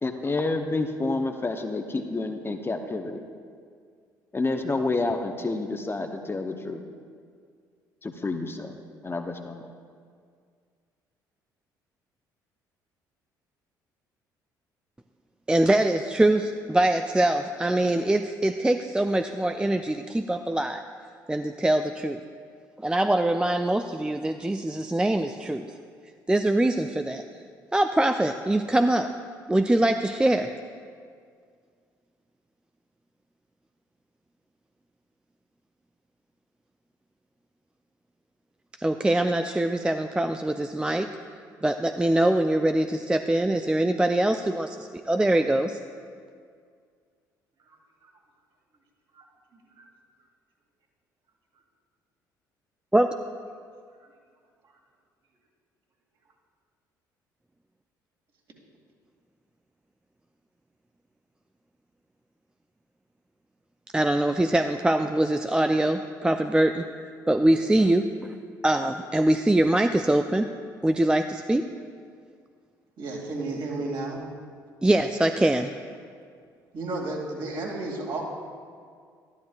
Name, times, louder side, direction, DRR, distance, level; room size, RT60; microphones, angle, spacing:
voice 1, 0.0-3.2 4.3-6.8 8.0-8.7 9.0-9.7, left 3 dB, 25° left, 5 dB, 0.8 m, -29 dB
voice 2, 15.5-20.8 21.3-22.2 22.8-25.7 26.3-27.2 27.7-29.1 29.5-30.5 38.8-41.1 41.6-45.8 52.9-53.1 63.9-66.9 67.3-68.3 68.6-70.5 70.8-71.6 74.8-75.7, right 1 dB, 10° right, 7 dB, 0.4 m, -23 dB
voice 3, 47.7-48.1 49.1-49.3 49.8-49.9 73.0-74.2 76.7-78.2, right 2 dB, 55° right, -1 dB, 2.3 m, -33 dB
13.0 x 11.5 x 2.4 m, 2.1 s
figure-of-eight pair, 50°, 10 cm